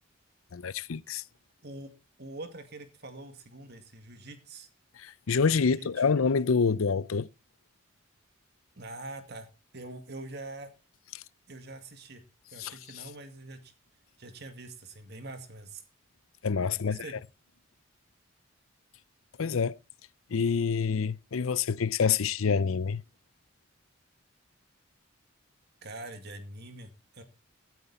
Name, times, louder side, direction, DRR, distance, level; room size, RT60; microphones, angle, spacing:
voice 1, 0.5-1.2 5.0-7.3 11.1-11.2 12.6-12.7 16.4-17.0 19.4-19.8 20.3-23.0, left 5 dB, 90° left, 0.6 m, -27 dB
voice 2, 2.2-4.7 5.6-6.0 8.8-9.5 9.7-10.7 11.5-12.2 12.5-13.7 14.2-15.8 16.7-17.2 25.8-27.2, right 2 dB, 55° right, 2.2 m, -44 dB
17.0 x 9.4 x 4.2 m
head